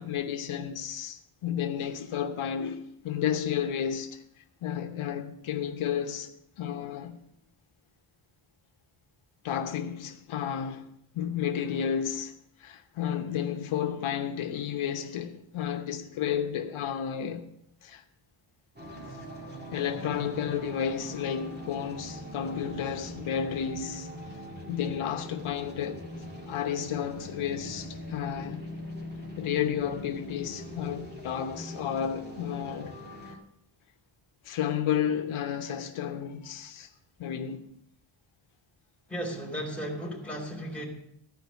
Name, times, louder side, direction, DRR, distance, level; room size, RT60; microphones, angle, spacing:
voice 1, 0.0-4.2 4.6-7.2 9.4-10.9 11.1-12.3 12.6-17.5 17.8-18.0 19.7-24.1 24.7-26.0 26.5-28.6 29.4-33.0 33.3-33.4 34.4-36.9 37.2-37.7, left 8 dB, 80° left, 1.0 m, -32 dB
sound 1, 18.8-33.4, equal, 20° right, 2.0 m, -42 dB
voice 2, 39.1-40.9, equal, 5° left, 2.7 m, -35 dB
14.5 x 5.2 x 8.1 m
wide cardioid pair, 155°, 48 cm